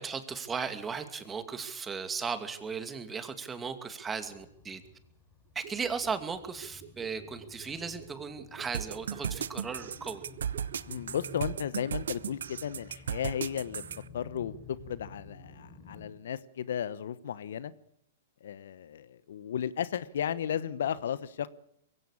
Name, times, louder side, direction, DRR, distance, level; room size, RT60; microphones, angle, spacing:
voice 1, 0.0-4.8 5.5-10.2, right 5 dB, 15° right, 2.5 m, -36 dB
sound 1, 4.2-16.1, left 3 dB, 5° left, 7.7 m, -52 dB
sound 2, 5.5-12.3 12.6-12.7, right 8 dB, 50° right, 3.0 m, -51 dB
sound 3, 8.7-14.0, right 8 dB, 75° right, 0.8 m, -35 dB
voice 2, 10.9-13.8 14.1-17.7 18.4-21.5, left 9 dB, 70° left, 1.0 m, -34 dB
22.5 x 16.0 x 8.5 m
hypercardioid pair, 115°, 0 cm